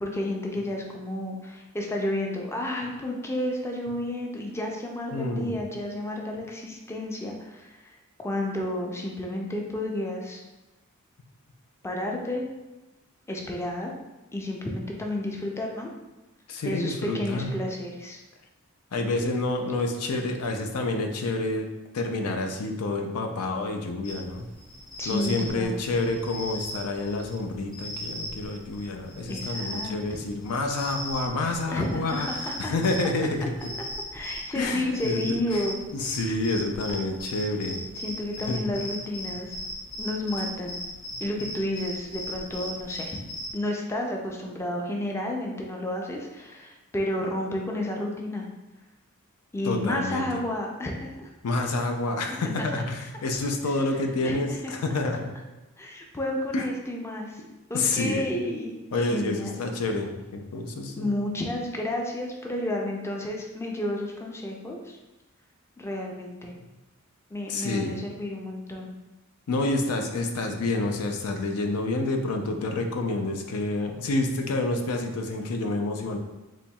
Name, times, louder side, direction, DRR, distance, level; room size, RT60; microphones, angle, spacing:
voice 1, 0.0-10.4 11.8-12.4 13.3-13.9 14.3-15.9 16.6-18.2 25.0-25.8 29.3-30.0 31.7-32.7 34.1-35.8 38.0-39.6 40.0-40.8 41.2-43.2 43.5-48.5 49.5-51.3 52.3-52.7 54.2-54.7 55.8-57.4 57.7-58.7 59.1-59.6 61.0-65.0 65.8-66.5 67.3-68.9, left 1 dB, 10° left, 0 dB, 0.4 m, -31 dB
voice 2, 5.1-5.5 16.5-17.5 18.9-21.7 21.9-24.5 25.1-33.5 34.5-35.6 35.9-37.8 38.5-38.6 49.6-50.3 51.4-55.3 56.5-56.7 57.7-58.3 58.9-61.1 67.5-68.0 69.5-76.2, left 2 dB, 85° left, 4 dB, 0.5 m, -28 dB
sound 1, 24.0-43.5, left 1 dB, 55° left, 1.5 m, -38 dB
4.3 x 3.0 x 2.3 m, 1.1 s
head